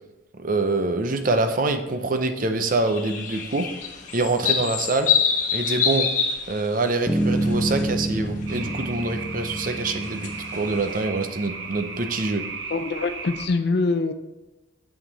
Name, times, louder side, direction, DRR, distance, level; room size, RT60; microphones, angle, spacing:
voice 1, 0.3-3.7 4.1-5.1 5.5-6.1 6.5-12.4, right 3 dB, 45° right, 8 dB, 0.6 m, -25 dB
sound 1, 2.7-7.8 8.1-8.5 9.7-11.0, left 6 dB, 40° left, 1.3 m, -26 dB
Bass guitar, 7.1-11.5, right 1 dB, ahead, 0.8 m, -28 dB
sound 2, 8.5-13.5, right 5 dB, 70° right, 0.9 m, -36 dB
voice 2, 12.7-14.1, left 3 dB, 55° left, 10 dB, 0.5 m, -24 dB
7.3 x 5.9 x 4.1 m, 1.0 s
head